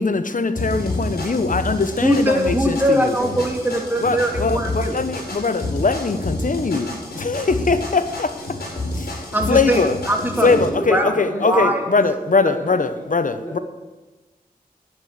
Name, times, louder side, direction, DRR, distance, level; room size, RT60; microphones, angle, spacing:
voice 1, 0.0-3.2 4.0-8.6 8.9-10.0 10.4-13.6, left 4 dB, 55° left, 11 dB, 1.1 m, -21 dB
sound 1, 0.5-10.6, left 1 dB, 80° left, 5.2 m, -29 dB
voice 2, 2.0-4.9 9.3-10.5 10.9-11.1 11.4-11.8, right 1 dB, 10° right, 1 dB, 2.6 m, -21 dB
voice 3, 10.3-11.8 12.4-13.6, equal, 15° left, -3 dB, 4.7 m, -31 dB
10.5 x 9.5 x 6.9 m, 1.2 s
cardioid pair, 40°, 16 cm